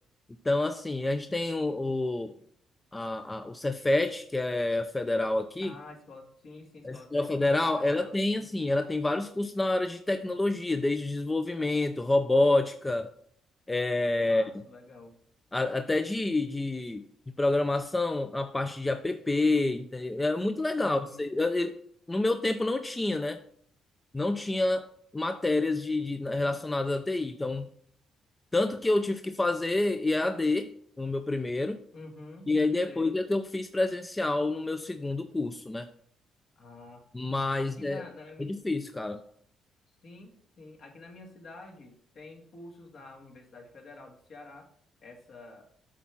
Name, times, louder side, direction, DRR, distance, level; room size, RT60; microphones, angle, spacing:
voice 1, 0.4-2.3 2.9-5.8 6.8-13.1 13.7-14.6 15.5-21.7 22.1-23.4 24.1-24.9 25.1-27.7 28.5-30.7 31.0-31.8 32.5-35.9 37.1-38.0 38.4-39.2, left 2 dB, 15° left, 8 dB, 0.5 m, -28 dB
voice 2, 5.6-7.3 7.8-8.5 14.2-15.2 20.8-21.2 31.9-32.5 32.8-33.2 36.6-37.1 37.6-38.5 40.0-44.7 45.0-45.7, left 2 dB, 60° left, 2 dB, 1.8 m, -48 dB
8.5 x 3.6 x 5.9 m, 0.63 s
cardioid pair, 90°, 0 cm